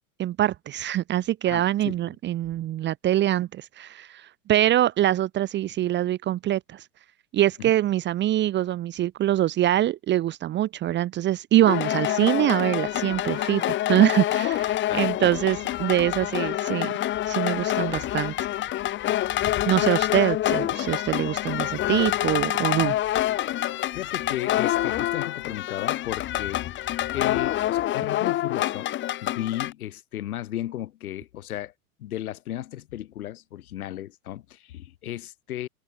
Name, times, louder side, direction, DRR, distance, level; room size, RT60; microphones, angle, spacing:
voice 1, 0.2-6.8 7.3-16.9 17.3-18.3 19.7-23.0, right 13 dB, 25° right, 1.1 m, -24 dB
voice 2, 1.4-2.0 7.6-7.7 14.9-15.3 19.6-19.9 22.8-23.0 23.9-26.6 27.1-28.9 29.2-31.7 32.0-35.7, left 13 dB, 70° left, 7.6 m, -35 dB
sound 1, 11.7-29.7, left 14 dB, 25° left, 1.2 m, -26 dB
hypercardioid pair, 120°, 45 cm